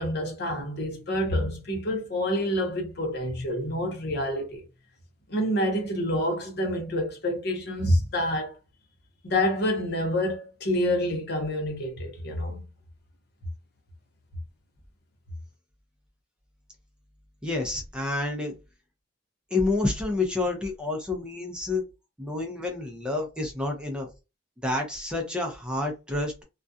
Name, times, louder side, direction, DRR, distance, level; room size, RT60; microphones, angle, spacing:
voice 1, 0.0-4.6 5.3-8.5 9.2-12.6, left 1 dB, 60° left, 0.9 m, -27 dB
voice 2, 17.4-18.5 19.5-21.8 22.2-24.1 24.6-26.4, left 2 dB, 5° right, 0.6 m, -29 dB
2.3 x 2.3 x 2.6 m
head